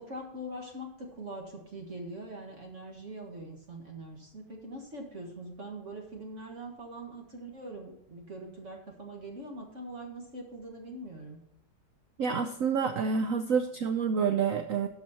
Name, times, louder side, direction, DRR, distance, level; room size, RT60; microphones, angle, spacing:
voice 1, 0.0-11.4, right 1 dB, 45° right, 1 dB, 1.8 m, -43 dB
voice 2, 12.2-14.9, right 6 dB, 65° right, 8 dB, 0.9 m, -28 dB
12.5 x 5.5 x 5.6 m, 0.77 s
omnidirectional pair, 1.9 m